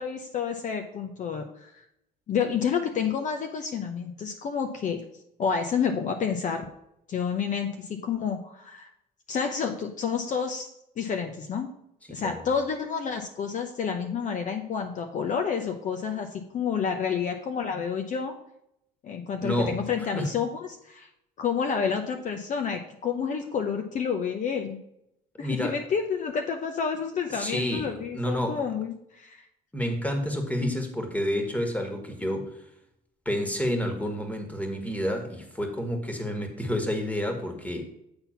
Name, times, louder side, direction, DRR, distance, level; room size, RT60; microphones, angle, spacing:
voice 1, 0.0-1.8 2.3-5.0 5.4-6.7 7.1-8.9 9.3-10.7 11.0-11.7 12.1-18.3 19.0-21.1 21.4-24.8 25.4-29.4, left 6 dB, 50° left, 5 dB, 0.8 m, -29 dB
voice 2, 12.1-12.4 19.4-19.9 20.1-20.4 25.4-25.8 27.3-28.6 29.7-32.6 33.3-37.8, equal, 10° left, 4 dB, 1.7 m, -29 dB
8.8 x 4.0 x 5.7 m, 0.79 s
cardioid pair, 110°, 17 cm